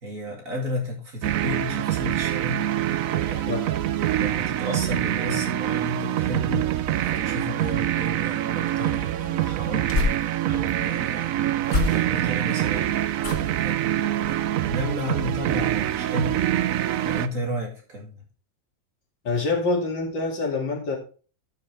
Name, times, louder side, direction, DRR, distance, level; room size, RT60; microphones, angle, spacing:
voice 1, 0.0-2.6 2.9-3.8 4.2-6.6 7.0-10.0 10.4-12.9 13.4-13.9 14.2-14.4 14.7-16.3 17.0-18.2, equal, 45° right, 0 dB, 3.1 m, -33 dB
sound 1, 1.2-17.3, right 12 dB, 75° right, 0.8 m, -25 dB
sound 2, 9.1-10.7 11.6-12.4 13.2-13.7 14.2-14.5 14.8-14.9, left 4 dB, 40° left, 1.8 m, -29 dB
voice 2, 19.2-21.0, left 3 dB, 70° left, 0 dB, 3.3 m, -25 dB
13.0 x 6.7 x 3.4 m, 0.37 s
omnidirectional pair, 2.1 m